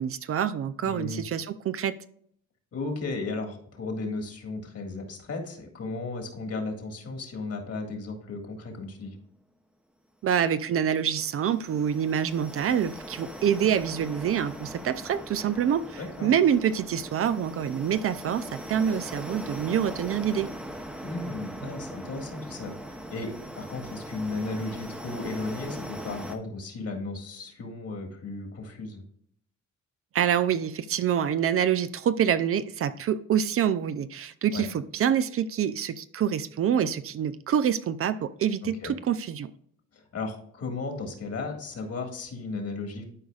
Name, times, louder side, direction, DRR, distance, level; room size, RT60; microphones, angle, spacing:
voice 1, 0.0-2.0 10.2-20.5 21.6-21.7 30.1-39.5, right 8 dB, 50° right, 0.5 m, -26 dB
voice 2, 0.8-1.2 2.7-9.2 16.0-16.3 21.0-29.0 34.5-34.6 38.6-38.9 39.9-43.0, left 3 dB, 55° left, 1.9 m, -35 dB
sound 1, 10.7-26.4, equal, 5° right, 0.8 m, -40 dB
12.0 x 4.7 x 2.4 m
cardioid pair, 90°, 30 cm